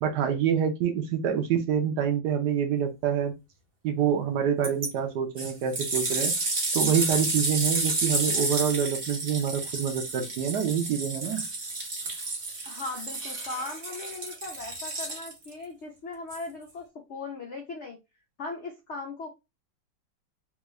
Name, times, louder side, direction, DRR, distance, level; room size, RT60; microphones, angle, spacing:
voice 1, 0.0-3.3 3.8-6.3 6.7-11.4, right 8 dB, 70° right, 6 dB, 1.1 m, -26 dB
sound 1, 4.6-4.9 5.4-15.5 16.3-16.4, right 3 dB, 40° right, 0.9 m, -30 dB
voice 2, 12.7-18.0 18.4-19.3, left 3 dB, 80° left, 1 dB, 0.6 m, -38 dB
3.5 x 2.4 x 3.0 m, 0.24 s
omnidirectional pair, 2.1 m